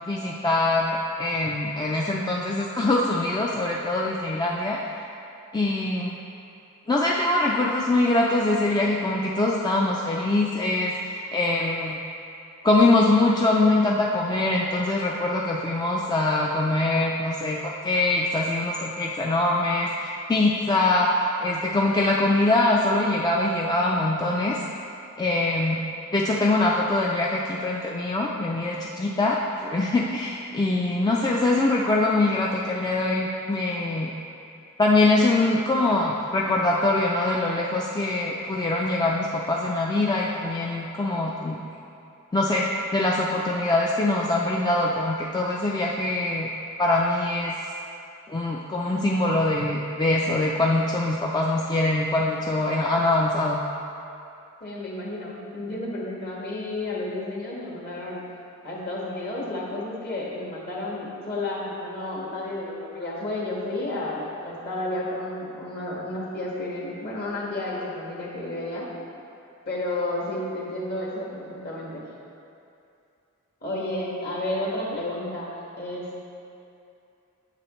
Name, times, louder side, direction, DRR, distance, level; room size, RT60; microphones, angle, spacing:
voice 1, 0.0-5.0 5.5-6.1 6.9-12.0 12.6-24.6 25.2-25.8 26.1-34.1 34.8-41.6 42.3-46.5 46.8-47.6 48.3-53.6, left 2 dB, 20° left, -3 dB, 0.4 m, -23 dB
voice 2, 54.6-58.2 58.6-68.9 69.7-72.0 73.6-76.2, left 1 dB, 50° left, -4 dB, 1.5 m, -31 dB
9.7 x 7.0 x 3.1 m, 2.6 s
head